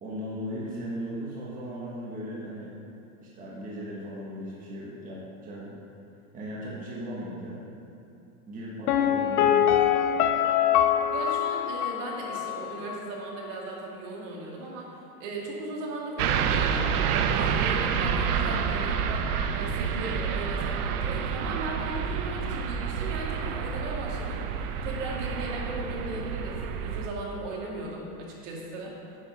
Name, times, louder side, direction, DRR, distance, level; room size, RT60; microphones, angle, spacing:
voice 1, 0.0-2.7 3.2-5.8 6.3-7.6 8.5-9.8, equal, 20° right, -6 dB, 1.3 m, -37 dB
Piano, 8.9-12.6 12.9-13.0, left 10 dB, 80° left, 0.7 m, -24 dB
voice 2, 11.1-14.9 15.2-16.9 17.3-19.3 19.5-24.4 24.8-28.9, right 2 dB, 55° right, -2 dB, 2.2 m, -37 dB
sound 1, 16.2-27.1, right 7 dB, 80° right, 0.8 m, -28 dB
9.6 x 5.3 x 5.8 m, 2.7 s
supercardioid pair, 150°, 45 cm